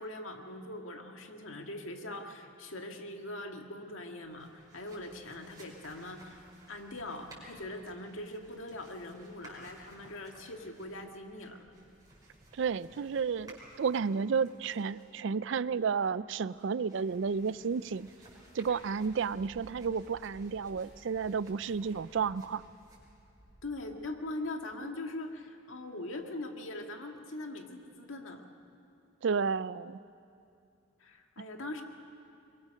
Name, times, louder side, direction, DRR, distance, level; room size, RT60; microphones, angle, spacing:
voice 1, 0.0-6.4 6.7-11.6 23.6-28.4 31.0-31.8, left 2 dB, 85° left, 4 dB, 1.8 m, -42 dB
sound 1, 4.2-24.2, right 1 dB, 20° right, 5.5 m, -57 dB
voice 2, 12.5-18.1 18.5-22.7 29.2-30.0, right 5 dB, 65° right, 18 dB, 0.4 m, -32 dB
23.0 x 22.0 x 6.4 m, 2.6 s
head